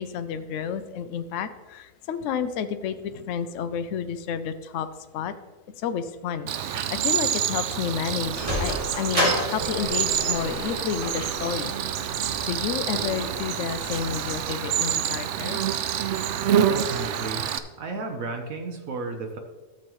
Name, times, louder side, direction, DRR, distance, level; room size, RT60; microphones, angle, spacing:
voice 1, 0.0-4.9 5.1-5.3 5.8-11.7 12.4-15.6, left 7 dB, 65° left, 10 dB, 0.7 m, -30 dB
Cricket, 6.5-17.6, right 9 dB, 75° right, 0.6 m, -27 dB
Sliding door, 8.1-14.4, equal, 20° right, 2.4 m, -32 dB
voice 2, 16.6-17.5 17.8-19.4, right 3 dB, 60° right, 5 dB, 1.2 m, -33 dB
13.0 x 7.2 x 3.1 m, 1.3 s
omnidirectional pair, 1.8 m